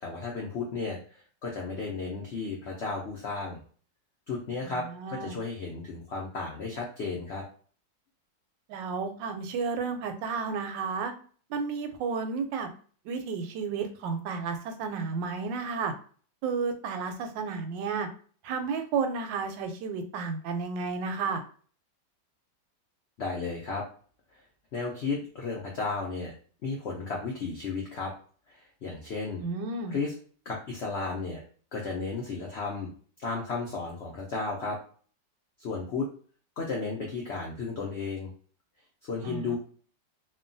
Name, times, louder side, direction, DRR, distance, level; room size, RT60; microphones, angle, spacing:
voice 1, 0.0-3.6 4.3-7.4 23.2-23.8 24.7-26.3 26.6-28.1 28.8-29.4 29.9-30.1 30.5-31.4 31.7-32.9 33.2-34.8 35.6-36.1 36.6-38.3 39.0-39.6, left 4 dB, 80° left, -2 dB, 0.5 m, -33 dB
voice 2, 4.6-5.4 8.7-11.1 11.5-12.7 13.0-15.9 16.4-18.1 18.4-21.4 29.4-29.9 39.2-39.6, right 5 dB, 85° right, 7 dB, 1.2 m, -32 dB
3.0 x 2.2 x 2.5 m, 0.42 s
omnidirectional pair, 1.9 m